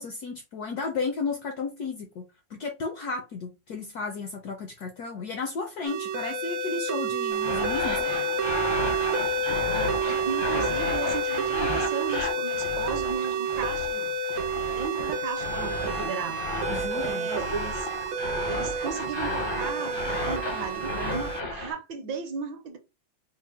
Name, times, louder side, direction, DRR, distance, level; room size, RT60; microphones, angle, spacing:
voice 1, 0.0-8.1 16.7-17.3, left 4 dB, 70° left, 0.9 m, -33 dB
sound 1, 5.8-21.4, right 3 dB, 90° right, 0.8 m, -30 dB
Dogscape Growler, 7.3-21.7, left 2 dB, 50° left, 0.6 m, -33 dB
voice 2, 10.1-14.3 14.7-16.7 17.0-17.9 18.5-22.8, right 5 dB, 70° right, 1.3 m, -36 dB
4.2 x 2.0 x 3.5 m
omnidirectional pair, 2.2 m